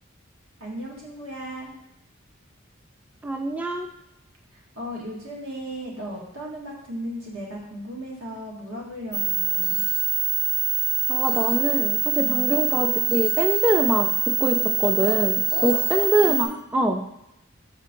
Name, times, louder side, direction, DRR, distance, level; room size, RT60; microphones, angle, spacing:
voice 1, 0.6-1.7 4.5-9.8 12.2-12.5 15.5-16.5, equal, 85° right, -3 dB, 1.7 m, -36 dB
voice 2, 3.2-3.9 11.1-17.0, equal, 5° right, 4 dB, 0.3 m, -24 dB
sound 1, 9.1-16.4, right 8 dB, 50° right, 1.0 m, -24 dB
5.8 x 4.5 x 3.7 m, 0.84 s
head